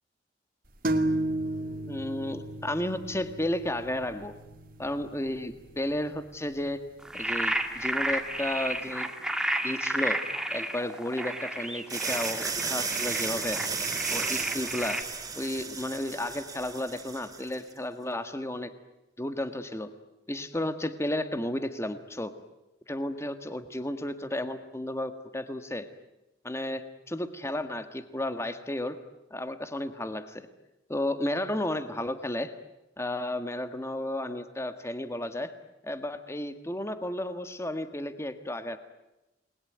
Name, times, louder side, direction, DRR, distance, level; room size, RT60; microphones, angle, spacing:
sound 1, 0.8-8.3, right 1 dB, 50° right, 2.4 m, -35 dB
voice 1, 1.9-4.3 4.8-6.8 7.1-9.1 9.6-10.2 10.5-13.6 14.1-15.0 15.3-18.7 19.2-19.9 20.3-22.3 22.9-25.9 26.4-29.0 29.3-30.5 30.9-32.5 33.0-35.5 35.8-38.8, left 1 dB, 15° left, 9 dB, 1.6 m, -33 dB
sound 2, 7.0-15.0, right 1 dB, 5° right, 2.2 m, -32 dB
sound 3, 11.9-17.6, right 5 dB, 20° right, 3.0 m, -34 dB
29.5 x 21.5 x 9.4 m, 0.98 s
head